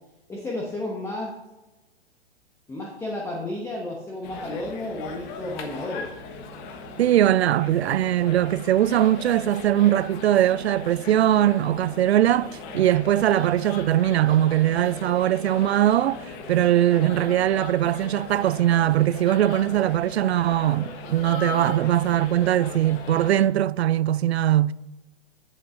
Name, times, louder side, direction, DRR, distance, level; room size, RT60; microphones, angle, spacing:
voice 1, 0.3-1.3 2.7-6.0, left 1 dB, 10° left, 1.2 m, -32 dB
sound 1, 4.2-23.5, left 4 dB, 35° left, 1.2 m, -38 dB
voice 2, 7.0-16.2 16.5-24.7, right 12 dB, 75° right, 0.5 m, -21 dB
13.0 x 7.4 x 2.6 m
hypercardioid pair, 125°, 32 cm